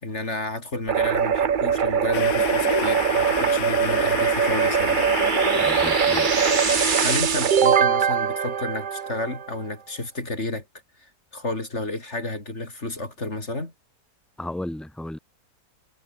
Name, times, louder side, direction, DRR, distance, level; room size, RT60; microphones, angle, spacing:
voice 1, 0.0-5.0 6.8-10.7 11.0-13.7, left 2 dB, 45° left, 4.9 m, -31 dB
sound 1, 0.9-9.5, right 7 dB, 45° right, 0.7 m, -22 dB
sound 2, 2.1-7.2, left 11 dB, 65° left, 1.2 m, -30 dB
voice 2, 5.5-6.3 14.4-15.2, left 1 dB, ahead, 0.6 m, -34 dB
omnidirectional pair, 1.7 m